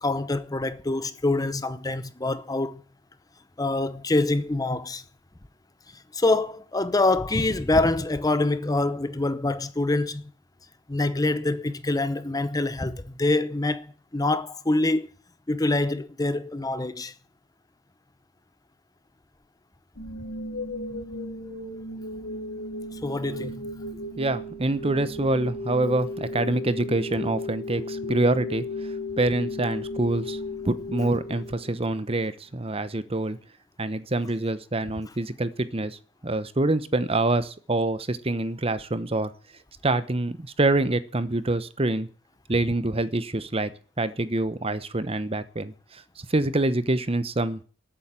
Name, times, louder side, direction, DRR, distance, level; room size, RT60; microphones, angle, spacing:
voice 1, 0.0-2.8 3.6-5.0 6.1-10.3 10.9-15.1 15.5-17.1 22.9-23.7, left 2 dB, 20° left, 0.7 m, -25 dB
sound 1, 20.0-32.0, left 2 dB, 90° left, 2.9 m, -35 dB
voice 2, 24.2-28.6 29.2-30.4 30.6-33.4 33.8-39.3 39.8-42.1 42.5-43.7 44.0-46.0 46.3-47.6, right 2 dB, 30° right, 1.0 m, -26 dB
13.0 x 8.9 x 8.9 m
head